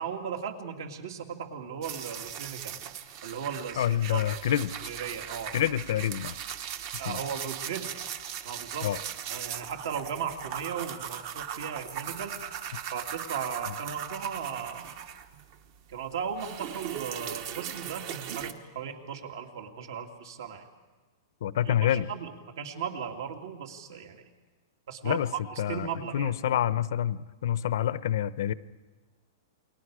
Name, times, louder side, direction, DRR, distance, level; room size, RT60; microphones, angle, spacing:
voice 1, 0.0-2.8 3.2-5.6 7.0-8.1 8.4-8.9 9.3-12.4 12.9-14.9 15.9-20.7 21.6-22.3 22.6-24.2 24.9-25.2 25.7-26.6, right 7 dB, 65° right, 4 dB, 2.6 m, -37 dB
sound 1, 1.8-15.6 15.9-18.5, right 9 dB, 35° right, 1.1 m, -39 dB
voice 2, 3.8-4.7 5.5-6.4 7.1-7.2 8.8-9.0 21.4-22.1 25.0-25.3 25.6-28.5, left 10 dB, 60° left, 16 dB, 0.7 m, -27 dB
29.5 x 22.0 x 4.9 m, 1.3 s
supercardioid pair, 175°, 2 cm